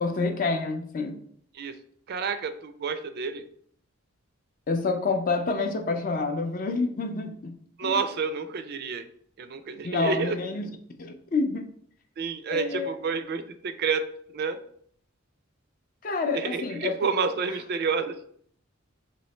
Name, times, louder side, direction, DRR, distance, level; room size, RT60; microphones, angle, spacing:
voice 1, 0.0-1.2 4.7-8.0 9.8-10.7 11.0-11.7 12.5-12.9 16.0-17.0, left 3 dB, 40° left, 0.5 m, -28 dB
voice 2, 2.1-3.4 7.8-9.0 9.4-10.4 12.2-14.1 14.3-14.6 16.3-18.2, right 5 dB, 50° right, 0.3 m, -29 dB
3.1 x 2.8 x 4.2 m
head